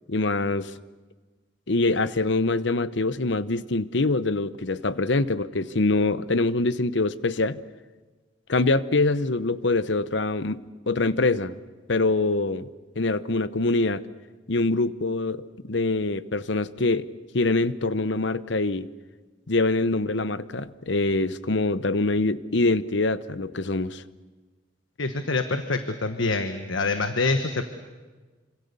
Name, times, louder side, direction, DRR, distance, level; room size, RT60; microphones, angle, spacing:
voice 1, 0.1-0.7 1.7-7.6 8.5-11.6 11.9-12.7 13.0-14.0 14.5-17.1 17.3-18.9 19.5-24.0, left 2 dB, 65° left, 15 dB, 0.9 m, -24 dB
voice 2, 25.0-27.6, left 3 dB, 80° left, 8 dB, 1.4 m, -26 dB
27.5 x 26.5 x 6.9 m, 1.3 s
head